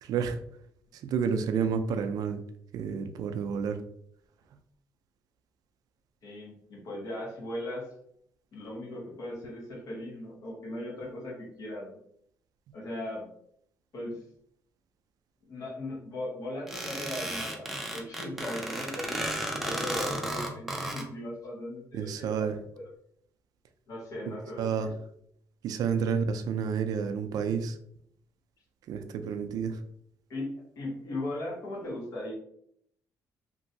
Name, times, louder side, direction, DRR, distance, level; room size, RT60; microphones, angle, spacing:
voice 1, 0.0-0.4 0.9-2.4 2.7-3.8 21.9-22.6 24.6-24.9 25.6-27.8 28.9-29.8, right 6 dB, 70° right, 7 dB, 0.3 m, -30 dB
voice 2, 6.2-7.9 8.5-12.0 12.7-13.3 13.9-14.2 15.5-19.2 19.6-22.9 23.9-24.9 30.3-32.3, left 1 dB, 60° left, -3 dB, 1.3 m, -38 dB
sound 1, 16.7-21.0, right 1 dB, 5° right, 0.5 m, -33 dB
2.9 x 2.6 x 2.7 m, 0.69 s
cardioid pair, 130°, 7 cm